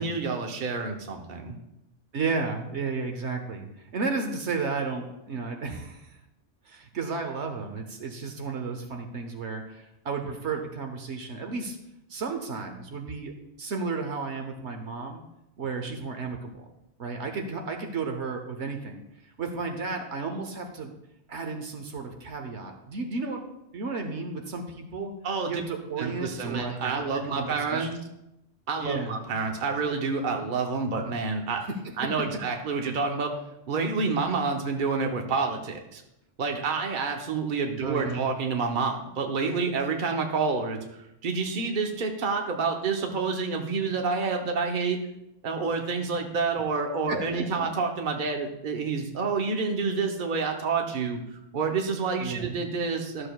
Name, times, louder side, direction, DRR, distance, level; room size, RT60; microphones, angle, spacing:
voice 1, 0.0-1.6 25.2-25.6 26.0-27.9 28.7-31.6 32.0-33.3 33.7-36.0 36.4-45.0 45.4-53.3, right 4 dB, 45° right, 3 dB, 1.0 m, -28 dB
voice 2, 2.1-3.7 3.9-6.1 6.7-11.8 12.1-15.2 15.6-16.6 17.0-19.0 19.4-20.9 21.3-23.4 23.7-25.1 25.5-28.1 28.8-29.2 31.8-31.9 37.8-38.3 47.1-47.7 52.2-52.6, right 4 dB, 70° right, 4 dB, 1.1 m, -33 dB
12.5 x 6.7 x 2.3 m, 0.84 s
omnidirectional pair, 1.2 m